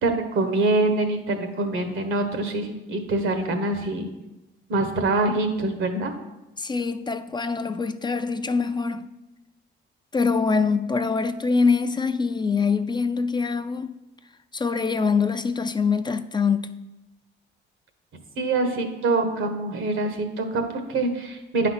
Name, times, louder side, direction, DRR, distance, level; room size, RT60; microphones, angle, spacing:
voice 1, 0.0-4.1 4.7-6.1 18.4-21.7, right 2 dB, 85° right, 1.3 m, -25 dB
voice 2, 6.6-9.1 10.1-14.0 14.5-16.7, left 5 dB, 20° left, 0.4 m, -24 dB
9.5 x 4.1 x 5.8 m
cardioid pair, 90°, 20 cm